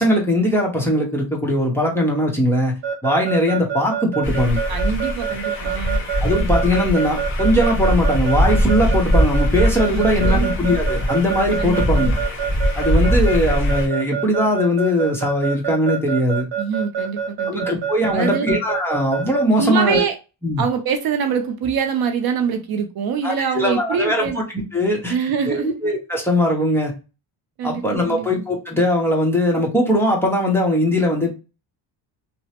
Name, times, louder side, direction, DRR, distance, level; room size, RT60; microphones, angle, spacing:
voice 1, 0.0-2.8 3.0-4.6 6.2-12.2 12.8-16.5 17.5-20.0 20.4-20.6 23.2-25.1 25.4-26.9 27.6-31.3, left 1 dB, 5° left, 0.7 m, -20 dB
Keyboard (musical) / Alarm, 2.8-19.4, right 8 dB, 70° right, 1.0 m, -25 dB
sound 1, 4.2-13.9, equal, 25° left, 1.0 m, -21 dB
voice 2, 4.7-6.0 9.9-10.6 11.6-11.8 16.6-17.6 18.1-18.5 19.6-20.2 20.6-24.4 25.1-25.8 27.6-28.3, right 7 dB, 55° right, 0.5 m, -24 dB
2.9 x 2.0 x 2.8 m
cardioid pair, 135°, 45 cm